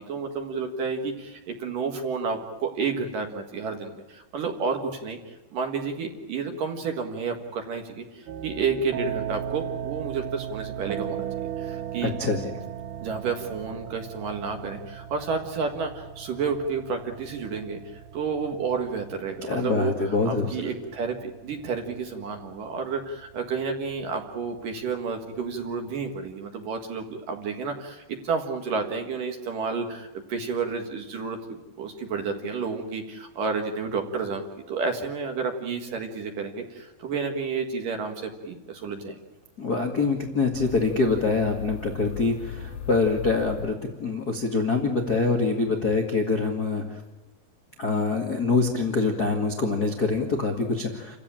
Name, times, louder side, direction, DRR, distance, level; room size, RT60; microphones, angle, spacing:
voice 1, 0.1-11.3 11.6-12.1 13.0-19.9 20.3-39.2, right 5 dB, 55° right, 4 dB, 2.7 m, -31 dB
sound 1, 8.3-26.2, right 10 dB, 85° right, 1.8 m, -38 dB
voice 2, 12.0-12.5 19.5-20.7 39.6-47.0 47.8-51.2, left 3 dB, 75° left, 1 dB, 0.8 m, -25 dB
sound 2, 40.5-44.3, left 5 dB, 55° left, 2.7 m, -38 dB
29.0 x 15.5 x 8.9 m, 1.1 s
omnidirectional pair, 5.4 m